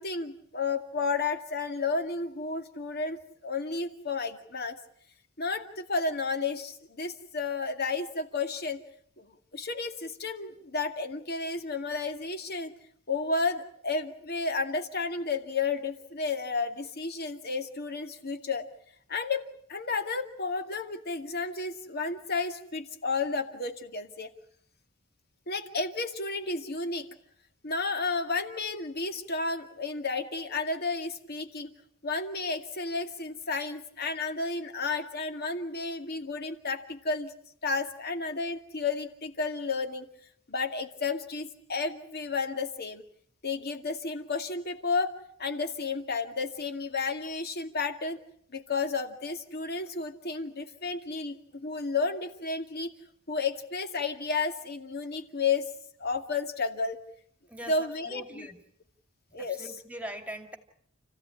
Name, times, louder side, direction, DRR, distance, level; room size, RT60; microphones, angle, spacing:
voice 1, 0.0-4.8 5.4-8.8 9.2-12.7 13.1-18.7 19.1-24.3 25.5-27.1 27.6-31.7 32.0-37.3 37.6-40.1 40.5-43.0 43.4-45.1 45.4-48.2 48.5-52.9 53.3-55.7 56.0-57.0 57.7-58.5 59.3-59.7, left 4 dB, 45° left, 7 dB, 2.3 m, -32 dB
voice 2, 57.5-58.6 59.3-60.6, equal, 5° right, 6 dB, 2.3 m, -42 dB
29.5 x 15.5 x 9.8 m, 0.66 s
head